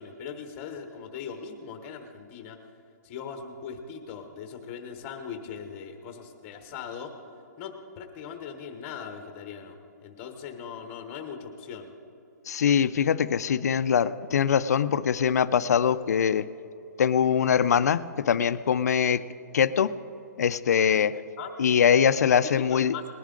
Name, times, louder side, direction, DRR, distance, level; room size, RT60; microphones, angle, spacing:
voice 1, 0.0-2.6 3.0-7.1 7.6-9.8 10.0-11.9 21.4-21.5 22.6-23.0, left 7 dB, 20° left, 6 dB, 0.9 m, -40 dB
voice 2, 12.5-16.5 17.0-19.2 19.5-19.9 20.4-21.2 21.6-22.9, left 8 dB, 60° left, 14 dB, 0.5 m, -23 dB
19.5 x 10.5 x 3.8 m, 2.7 s
hypercardioid pair, 175°, 10 cm